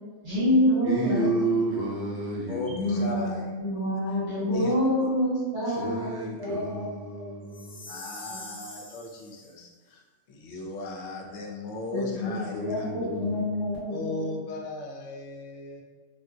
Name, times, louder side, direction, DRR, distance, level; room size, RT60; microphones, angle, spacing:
voice 1, 0.2-1.3 2.7-6.9 7.1-7.3 7.8-7.9 8.3-8.4 11.9-12.4 12.7-14.3, left 1 dB, 60° right, -12 dB, 1.9 m, -27 dB
voice 2, 0.8-3.3 5.7-7.8 12.5-13.6, right 1 dB, 40° right, -5 dB, 0.3 m, -31 dB
voice 3, 2.5-3.5 4.5-4.7 5.0-5.1 7.9-10.0 10.3-12.9 13.9-15.8, left 2 dB, 80° left, 0 dB, 0.9 m, -37 dB
Chime, 7.5-9.5, left 2 dB, 45° left, 0.7 m, -44 dB
3.4 x 2.3 x 2.6 m, 1.4 s
omnidirectional pair, 1.3 m